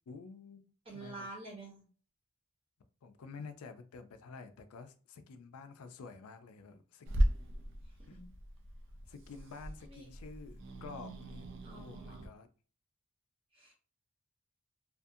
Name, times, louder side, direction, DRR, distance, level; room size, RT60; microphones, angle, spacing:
voice 1, 0.1-0.7 0.9-1.3 3.0-7.1 8.1-8.2 9.1-12.5, left 4 dB, 80° left, 0.4 m, -50 dB
voice 2, 0.9-1.8 8.1-8.2 9.9-10.1 11.6-12.3 13.5-13.7, right 2 dB, 25° right, 0.8 m, -48 dB
Growling / Hiss, 7.0-12.3, equal, 55° right, 0.4 m, -37 dB
2.4 x 2.4 x 2.6 m
head